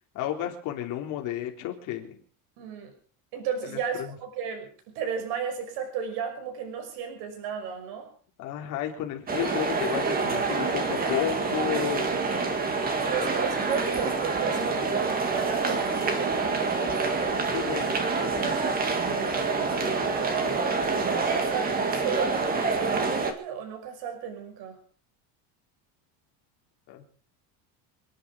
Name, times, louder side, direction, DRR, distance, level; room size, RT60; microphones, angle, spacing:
voice 1, 0.1-2.2 3.6-4.1 8.4-12.4 13.7-13.8 17.5-18.8 19.4-20.0 26.9-27.1, left 11 dB, 40° left, 2 dB, 3.5 m, -33 dB
voice 2, 2.6-2.9 3.3-8.1 12.1-12.3 13.0-16.7 19.8-20.7 21.3-24.8, right 7 dB, 60° right, 5 dB, 6.0 m, -34 dB
sound 1, 9.3-23.3, right 4 dB, 20° right, 2.0 m, -27 dB
28.0 x 10.5 x 5.0 m, 0.43 s
cardioid pair, 175°, 45 cm